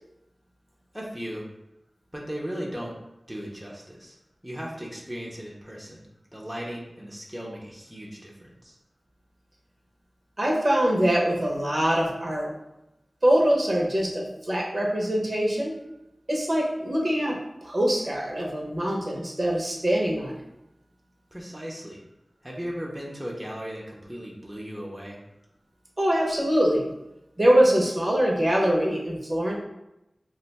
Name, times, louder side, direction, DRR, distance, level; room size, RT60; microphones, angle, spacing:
voice 1, 0.9-1.5 2.1-3.0 3.3-4.2 4.4-6.0 6.3-8.8 21.3-22.0 22.4-25.2, equal, 5° right, -4 dB, 0.6 m, -37 dB
voice 2, 10.4-12.5 13.2-15.8 16.3-17.4 17.6-20.4 26.0-26.9 27.4-29.6, equal, 45° right, -2 dB, 0.7 m, -23 dB
2.5 x 2.2 x 4.0 m, 0.90 s
wide cardioid pair, 60°, 0 cm